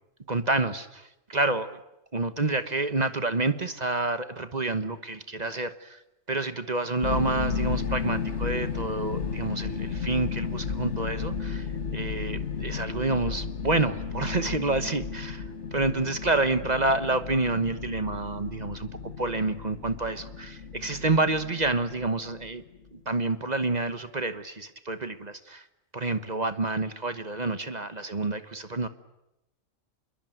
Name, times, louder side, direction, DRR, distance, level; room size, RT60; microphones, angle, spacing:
voice 1, 0.3-1.8 2.1-6.0 6.3-11.7 11.9-15.4 15.7-22.6 22.9-25.6 25.9-28.9, right 2 dB, 35° right, 11 dB, 1.2 m, -28 dB
sound 1, 7.0-22.9, left 6 dB, 60° left, 1.6 m, -33 dB
27.0 x 22.0 x 9.2 m, 0.90 s
omnidirectional pair, 1.3 m